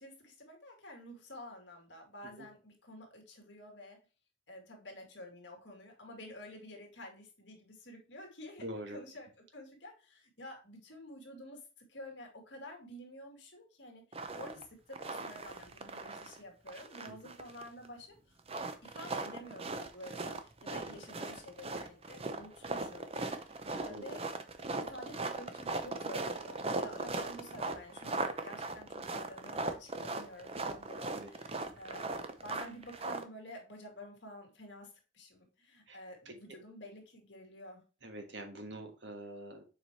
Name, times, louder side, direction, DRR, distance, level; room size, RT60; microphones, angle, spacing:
voice 1, 0.0-4.0 4.5-18.2 18.8-23.1 23.3-24.3 24.8-32.2 32.4-37.8, left 1 dB, 60° left, 2 dB, 2.3 m, -50 dB
voice 2, 8.6-9.0 20.9-21.0 23.9-24.2 31.1-31.3 35.9-36.0 36.2-36.3 38.0-39.6, right 1 dB, 60° right, 5 dB, 1.4 m, -44 dB
sound 1, 14.1-14.6 14.9-16.4 16.7-17.9 18.4-33.2, right 3 dB, 30° right, 0.7 m, -39 dB
7.0 x 4.6 x 3.1 m, 0.33 s
head